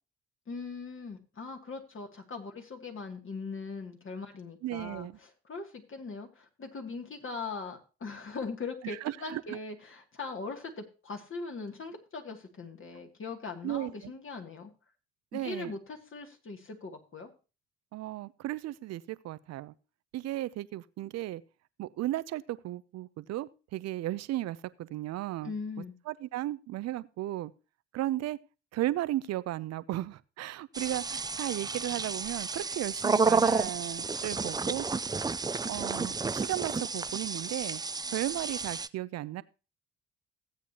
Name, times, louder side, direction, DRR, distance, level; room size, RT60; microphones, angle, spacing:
voice 1, 0.5-14.7 15.3-17.3 25.4-26.0, left 4 dB, 45° left, 2.4 m, -40 dB
voice 2, 4.6-5.2 8.8-9.4 13.6-14.1 15.3-15.7 17.9-19.7 20.1-21.4 21.8-25.5 26.1-27.5 27.9-28.4 28.7-34.8 35.7-37.8 38.1-39.4, right 15 dB, 60° right, 0.6 m, -35 dB
sound 1, 30.7-38.9, right 4 dB, 15° right, 0.4 m, -31 dB
16.0 x 8.3 x 2.9 m
hypercardioid pair, 50°, 29 cm